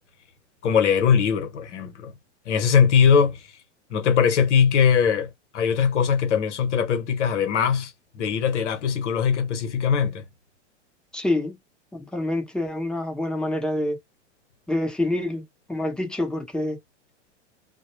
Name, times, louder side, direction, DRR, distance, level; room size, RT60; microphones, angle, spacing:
voice 1, 0.6-2.1 2.5-3.4 3.9-10.3, left 7 dB, 80° left, 1.0 m, -21 dB
voice 2, 11.1-11.6 11.9-14.0 14.7-15.4 15.7-16.8, left 1 dB, ahead, 0.8 m, -26 dB
2.2 x 2.1 x 3.0 m
hypercardioid pair, 110°, 35 cm